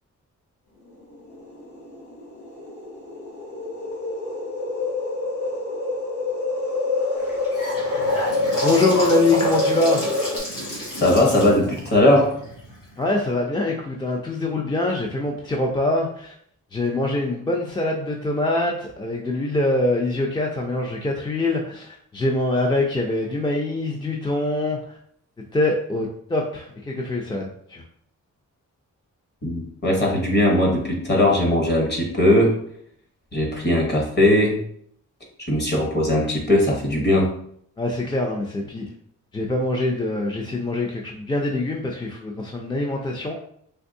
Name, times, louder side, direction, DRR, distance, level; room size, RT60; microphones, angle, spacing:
sound 1, 1.3-10.4, left 2 dB, 70° left, 0.9 m, -26 dB
Gurgling / Sink (filling or washing) / Bathtub (filling or washing), 7.2-13.2, equal, 90° left, 1.5 m, -31 dB
voice 1, 8.6-10.0 13.0-16.3 16.7-25.0 25.5-27.8 37.8-38.9 39.3-43.3, left 2 dB, 15° left, -1 dB, 0.3 m, -24 dB
voice 2, 11.0-12.3 29.4-32.6 33.3-34.6 35.4-37.3, left 1 dB, 35° left, -1 dB, 0.9 m, -19 dB
3.4 x 3.0 x 2.6 m, 0.66 s
wide cardioid pair, 155°, 31 cm